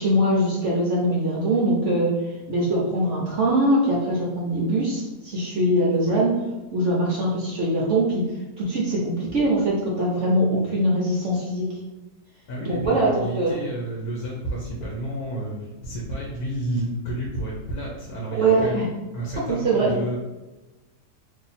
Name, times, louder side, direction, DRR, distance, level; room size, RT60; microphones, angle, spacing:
voice 1, 0.0-2.1 2.5-6.3 6.7-8.2 8.6-11.7 12.7-13.6 18.3-18.9 19.5-19.9, right 1 dB, 60° right, -4 dB, 0.8 m, -22 dB
voice 2, 12.5-18.9 19.1-20.2, right 1 dB, 70° left, -4 dB, 1.1 m, -31 dB
2.8 x 2.7 x 4.0 m, 1.1 s
omnidirectional pair, 1.8 m